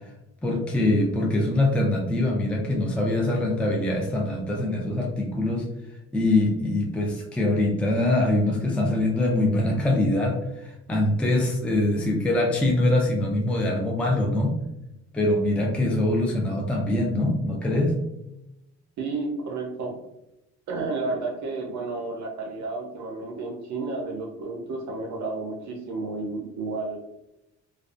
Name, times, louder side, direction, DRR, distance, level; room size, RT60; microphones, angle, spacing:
voice 1, 0.4-5.7 6.1-14.6 15.1-18.0, left 1 dB, 5° left, -1 dB, 0.4 m, -23 dB
voice 2, 19.0-20.0 20.7-27.0, right 3 dB, 65° right, 1 dB, 0.5 m, -31 dB
2.4 x 2.2 x 2.3 m, 0.89 s
cardioid pair, 90°, 30 cm